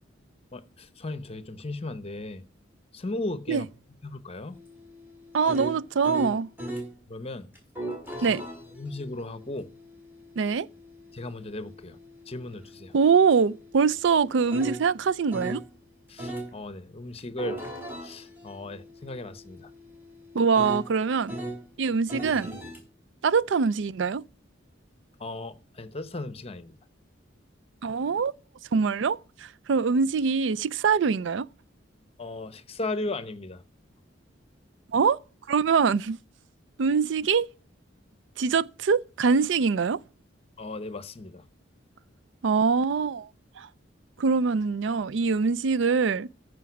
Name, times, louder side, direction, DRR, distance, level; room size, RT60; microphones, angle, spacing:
voice 1, 0.5-2.4 2.9-3.6 4.0-4.6 7.1-7.5 8.2-8.4 8.7-9.7 11.1-12.0 12.3-12.9 16.1-17.6 18.0-19.7 25.2-26.7 32.2-33.6 40.6-41.5, left 2 dB, 30° left, 0.9 m, -36 dB
sound 1, 4.5-6.9 7.5-15.7 16.2-16.5 17.2-21.6 22.1-22.8, right 1 dB, 10° right, 4.4 m, -39 dB
voice 2, 5.3-6.5 8.2-8.4 10.4-10.7 12.9-15.6 20.3-21.4 21.8-22.6 23.2-24.2 27.8-28.3 28.7-31.4 34.9-35.2 35.5-36.2 36.8-37.5 38.4-40.0 42.4-43.3 43.6-43.7 44.2-46.3, right 5 dB, 70° right, 0.4 m, -23 dB
14.0 x 5.2 x 5.9 m
head